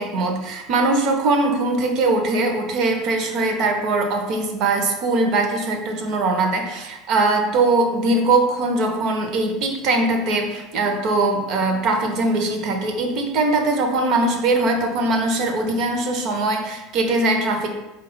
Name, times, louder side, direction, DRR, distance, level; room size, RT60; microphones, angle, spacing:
voice 1, 0.0-17.7, right 2 dB, 50° right, 4 dB, 0.7 m, -21 dB
4.6 x 2.3 x 3.8 m, 1.0 s
figure-of-eight pair, 70°, 0 cm